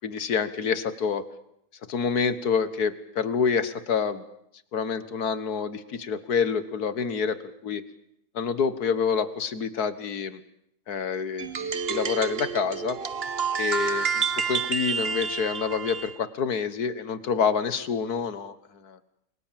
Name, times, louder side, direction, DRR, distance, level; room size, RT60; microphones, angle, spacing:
voice 1, 0.0-1.2 1.9-4.2 4.7-7.4 7.6-7.8 8.3-10.4 10.9-13.0 13.6-18.6 18.8-19.0, left 6 dB, 85° left, 13 dB, 2.0 m, -27 dB
sound 1, 11.4-16.1, right 6 dB, 45° right, 1.3 m, -29 dB
29.5 x 22.5 x 7.6 m, 0.76 s
omnidirectional pair, 1.6 m